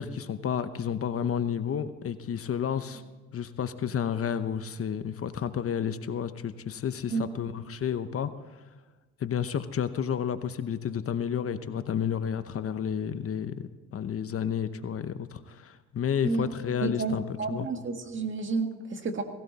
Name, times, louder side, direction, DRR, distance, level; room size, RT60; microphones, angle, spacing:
voice 1, 0.0-3.0 3.3-8.3 9.2-17.7, left 8 dB, 50° left, 11 dB, 0.9 m, -31 dB
voice 2, 16.8-19.2, right 4 dB, 40° right, 5 dB, 1.9 m, -30 dB
18.0 x 16.5 x 4.1 m, 1.3 s
cardioid pair, 90°, 30 cm